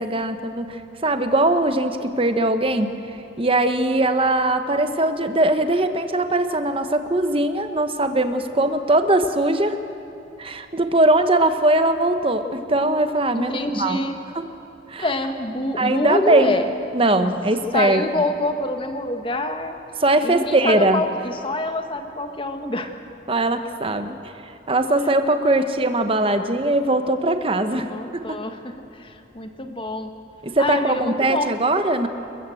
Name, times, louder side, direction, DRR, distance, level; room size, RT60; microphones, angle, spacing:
voice 1, 0.0-3.0 3.4-9.8 10.4-14.0 14.3-14.5 14.9-15.1 15.8-16.5 16.9-18.0 20.0-21.0 23.3-24.2 24.4-28.4 30.4-32.1, right 2 dB, 30° right, 8 dB, 1.1 m, -20 dB
voice 2, 13.3-14.2 15.0-16.7 17.2-17.3 17.7-19.8 20.2-22.9 25.4-25.7 27.7-30.1 30.6-31.5, left 1 dB, 30° left, 6 dB, 1.5 m, -26 dB
28.0 x 15.0 x 7.8 m, 2.8 s
head